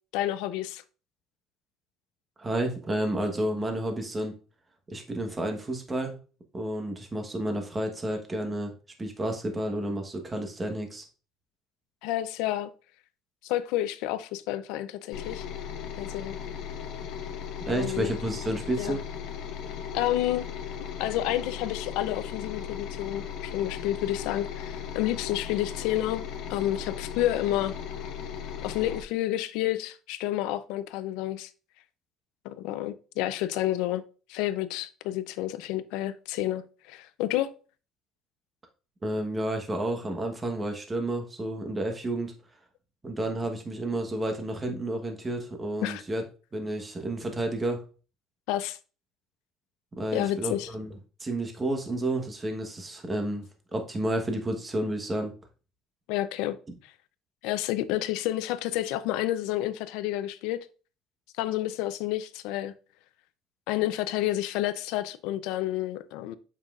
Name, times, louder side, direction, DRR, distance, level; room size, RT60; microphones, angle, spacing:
voice 1, 0.1-0.8 12.0-12.7 13.4-15.5 16.0-16.4 17.7-18.1 18.8-19.0 19.9-20.5 21.0-26.2 26.5-27.7 28.6-31.5 32.4-34.0 34.3-37.5 45.8-46.0 48.5-48.8 50.1-50.7 56.1-56.9 57.4-60.7 61.4-62.7 63.7-66.4, left 14 dB, 90° left, 0.5 m, -30 dB
voice 2, 2.4-4.3 4.9-6.2 6.5-8.7 9.0-11.0 17.7-19.0 39.0-42.3 43.0-46.2 46.5-47.8 50.0-53.4 53.7-55.3, right 1 dB, 15° right, 1.1 m, -31 dB
sound 1, 15.1-29.0, left 8 dB, 65° left, 1.1 m, -37 dB
7.4 x 5.5 x 2.4 m
cardioid pair, 145°, 0 cm